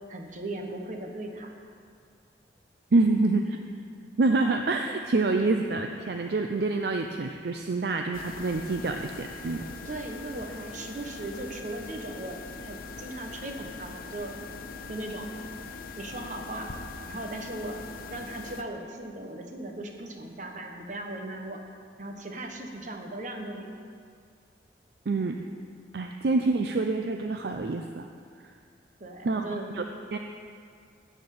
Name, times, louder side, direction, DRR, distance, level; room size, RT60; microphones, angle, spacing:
voice 1, 0.1-1.5 4.0-4.1 9.8-14.3 14.9-15.3 16.0-16.7 17.1-17.8 18.1-21.6 22.0-23.7 29.0-29.8, right 1 dB, 45° right, 2 dB, 1.1 m, -38 dB
voice 2, 2.9-3.6 4.2-9.6 25.1-25.4 25.9-28.1 29.2-29.5 29.7-29.8 30.1-30.2, right 3 dB, 60° right, 4 dB, 0.5 m, -26 dB
sound 1, 8.1-18.6, left 4 dB, 55° left, 0.7 m, -42 dB
13.0 x 4.4 x 8.5 m, 2.2 s
head